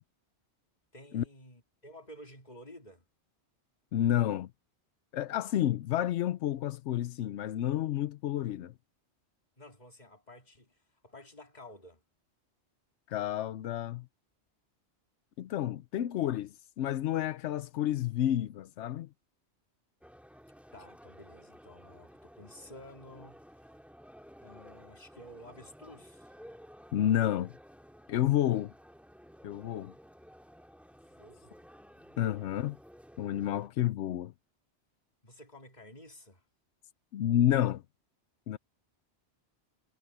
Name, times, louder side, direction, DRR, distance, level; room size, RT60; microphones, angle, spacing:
voice 1, 0.9-3.1 9.6-12.0 20.7-23.4 24.4-26.3 31.0-31.7 32.0-32.4 35.2-36.4, left 1 dB, 40° left, 3.2 m, -52 dB
voice 2, 3.9-4.5 5.1-8.7 13.1-14.1 15.4-19.1 26.9-27.5 28.1-28.7 29.4-29.9 32.2-32.8 33.2-34.3 37.1-37.8 38.5-38.6, left 12 dB, 90° left, 0.9 m, -30 dB
sound 1, 20.0-33.7, equal, ahead, 2.0 m, -54 dB
omnidirectional pair, 1.1 m